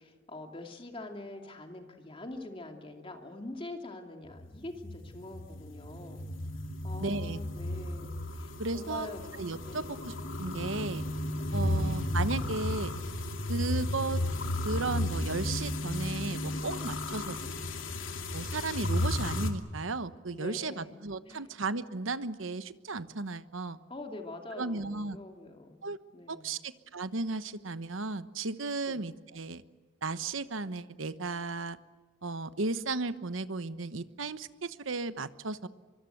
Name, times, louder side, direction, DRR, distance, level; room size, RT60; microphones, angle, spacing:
voice 1, 0.0-6.3 6.8-8.1 8.3-9.2 9.6-10.1 11.5-12.0 20.3-21.5 23.9-25.9 26.1-26.6 28.9-29.0, left 2 dB, 25° left, 4 dB, 2.6 m, -44 dB
sound 1, 4.3-19.5, left 1 dB, 80° left, 2.7 m, -34 dB
voice 2, 7.0-7.4 8.6-9.1 9.4-11.0 11.5-12.9 13.5-14.2 14.6-17.4 18.3-23.8 24.6-25.2 25.8-26.0 26.3-29.6 30.0-31.8 32.2-35.7, right 3 dB, 80° right, 13 dB, 1.1 m, -35 dB
24.5 x 24.5 x 8.0 m, 1.4 s
head